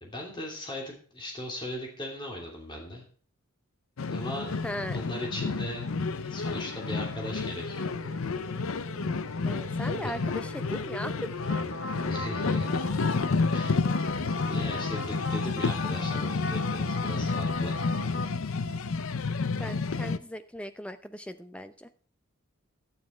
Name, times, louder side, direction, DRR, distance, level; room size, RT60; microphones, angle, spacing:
voice 1, 0.0-3.0 4.1-4.5 4.9-5.8 6.2-7.9 10.0-10.1 12.1-12.8 13.5-13.8 14.5-17.8, left 1 dB, 20° left, -1 dB, 2.9 m, -38 dB
sound 1, 4.0-20.2, left 4 dB, 70° left, 0.6 m, -30 dB
voice 2, 4.6-5.0 9.4-11.4 19.6-21.9, equal, 5° left, 10 dB, 0.6 m, -38 dB
sound 2, 7.2-16.6, right 2 dB, 60° right, 1.3 m, -49 dB
sound 3, 11.4-18.3, left 2 dB, 50° left, 1.1 m, -37 dB
12.0 x 9.6 x 4.4 m, 0.44 s
head